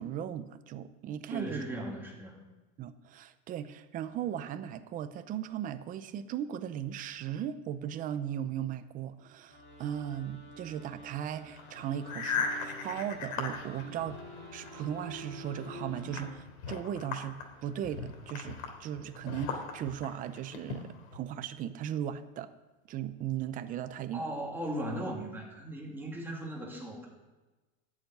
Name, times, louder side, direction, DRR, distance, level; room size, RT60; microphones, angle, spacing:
voice 1, 0.0-1.6 2.8-14.2 14.5-22.5 22.9-24.2, right 10 dB, 20° right, 12 dB, 0.6 m, -37 dB
voice 2, 1.3-2.4 24.1-27.1, right 1 dB, 5° right, -2 dB, 2.7 m, -37 dB
sound 1, 9.5-16.3, equal, 25° left, 5.1 m, -48 dB
sound 2, 11.4-14.7 15.0-21.2, left 5 dB, 75° left, 3.2 m, -39 dB
13.5 x 7.3 x 9.1 m, 1.2 s
supercardioid pair, 160°, 40 cm